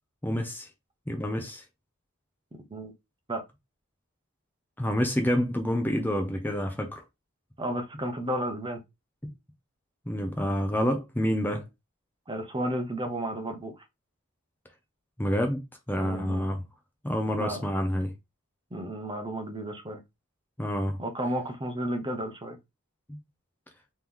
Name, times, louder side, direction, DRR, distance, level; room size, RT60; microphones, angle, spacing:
voice 1, 0.2-0.7 1.1-1.6 4.8-7.0 10.1-11.7 15.2-15.6 15.9-16.6 17.0-18.1 20.6-21.0 23.1-23.2, equal, 10° left, 0.6 m, -28 dB
voice 2, 7.6-8.8 12.3-13.7 16.0-16.5 17.4-17.6 18.7-20.0 21.0-22.6, right 1 dB, 25° right, 0.8 m, -32 dB
3.8 x 3.0 x 3.5 m
head